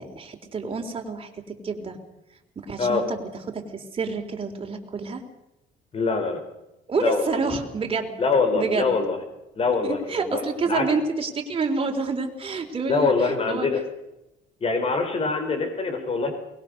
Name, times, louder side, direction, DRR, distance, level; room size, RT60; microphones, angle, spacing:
voice 1, 0.0-2.0 2.6-5.2 6.9-8.1 8.5-8.9 9.8-13.8, right 4 dB, 30° right, 2 dB, 3.7 m, -28 dB
voice 2, 5.9-6.4 7.0-7.3 8.2-9.2 9.5-10.4 10.7-10.9 12.9-13.8 14.6-16.3, left 4 dB, 35° left, 6 dB, 4.9 m, -24 dB
23.0 x 20.5 x 6.6 m, 0.91 s
cardioid pair, 110°, 17 cm